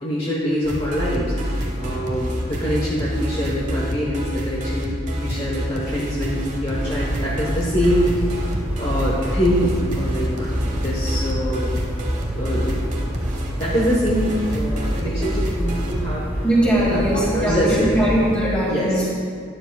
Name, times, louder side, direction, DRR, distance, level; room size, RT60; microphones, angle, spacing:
voice 1, 0.0-1.3 1.8-8.3 8.8-11.7 12.4-12.8 13.6-16.4 16.9-18.0 18.6-19.1, equal, 30° left, -5 dB, 1.1 m, -24 dB
sound 1, 0.6-16.0, equal, 35° right, 1.1 m, -27 dB
sound 2, 6.7-18.4, equal, 10° right, 0.7 m, -28 dB
voice 2, 16.4-19.1, right 1 dB, 5° left, -6 dB, 2.2 m, -20 dB
12.0 x 10.5 x 2.3 m, 2.2 s
head